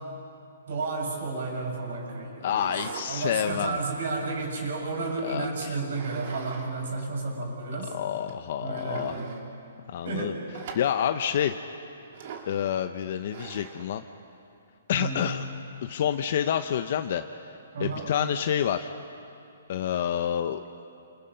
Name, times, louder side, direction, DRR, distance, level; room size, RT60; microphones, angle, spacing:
voice 1, 0.7-2.7 3.1-8.0 8.6-9.4 10.0-10.4 14.9-15.2 17.7-18.1, right 3 dB, 60° right, 0 dB, 7.3 m, -32 dB
voice 2, 2.4-3.8 5.2-5.8 7.9-9.1 9.9-10.3 10.7-11.6 12.5-14.0 14.9-15.4 15.8-17.2 17.8-18.9 19.7-20.6, left 9 dB, 45° left, 8 dB, 0.8 m, -28 dB
wooden chair skoots, 2.4-3.1 3.5-4.9 5.9-6.7 7.0-7.1 7.8-7.9 8.3-8.4 8.7-9.4 10.5-11.1 12.1-12.6 13.3-13.9, right 6 dB, 45° right, 2.8 m, -42 dB
29.0 x 28.0 x 5.7 m, 2.6 s
hypercardioid pair, 165°, 0 cm